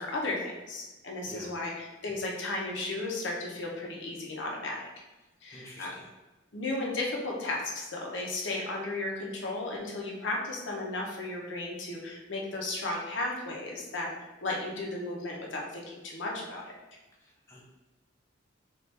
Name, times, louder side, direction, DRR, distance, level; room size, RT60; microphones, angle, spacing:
voice 1, 0.0-4.9 5.4-5.9 6.5-14.1 14.4-16.6, left 2 dB, 70° left, -2 dB, 0.8 m, -34 dB
voice 2, 1.2-1.6 5.5-6.1 17.2-17.6, left 1 dB, 15° left, -4 dB, 0.6 m, -48 dB
4.4 x 2.5 x 3.3 m, 1.1 s
head